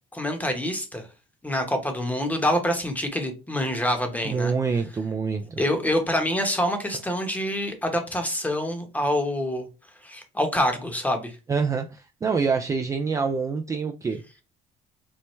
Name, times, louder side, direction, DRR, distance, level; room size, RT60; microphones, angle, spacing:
voice 1, 0.1-1.1 1.4-4.5 5.6-9.7 10.0-11.4, left 1 dB, 10° left, 0.9 m, -26 dB
voice 2, 4.2-5.6 11.5-14.2, right 5 dB, 20° right, 0.4 m, -26 dB
4.5 x 2.1 x 3.1 m
supercardioid pair, 90°, 17 cm